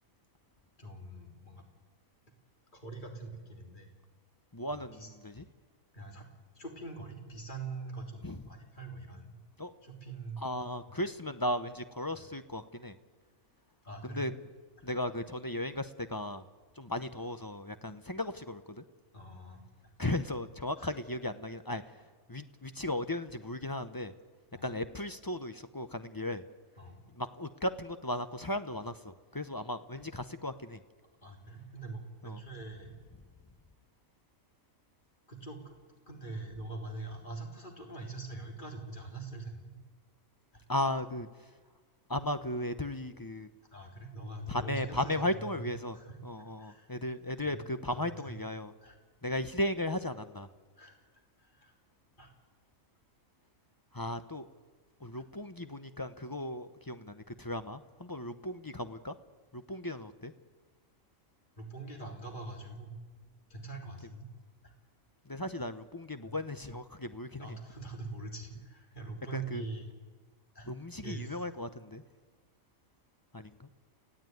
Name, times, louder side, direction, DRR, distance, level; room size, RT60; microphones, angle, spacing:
voice 1, 0.8-1.6 2.7-3.9 4.7-5.1 5.9-6.2 6.5-9.4 9.8-10.4 10.9-11.0 12.1-12.2 13.8-14.2 19.1-19.6 20.8-20.9 24.5-24.7 26.8-27.0 31.2-32.9 35.3-35.7 36.1-39.7 43.7-45.2 45.6-45.7 45.9-46.3 46.6-46.9 47.4-47.5 47.9-48.3 48.8-49.0 50.8-51.0 51.4-51.7 52.2-52.3 61.6-62.9 63.5-64.3 64.6-64.7 66.2-66.3 67.4-69.9 70.5-70.7 71.0-71.4, right 3 dB, 35° left, 2 dB, 3.4 m, -43 dB
voice 2, 4.5-5.4 8.2-8.4 9.6-9.7 10.4-13.0 14.0-14.3 14.8-16.4 16.8-18.8 20.0-21.8 22.3-24.1 24.6-26.4 27.1-30.8 32.2-32.4 40.7-41.3 42.1-43.5 44.5-46.0 46.2-48.7 49.2-50.5 53.9-54.5 55.0-59.1 59.5-60.3 65.3-67.6 69.3-69.6 70.7-72.0 73.3-73.7, left 1 dB, 20° left, 10 dB, 0.7 m, -36 dB
29.0 x 16.0 x 9.3 m, 1.4 s
omnidirectional pair, 1.4 m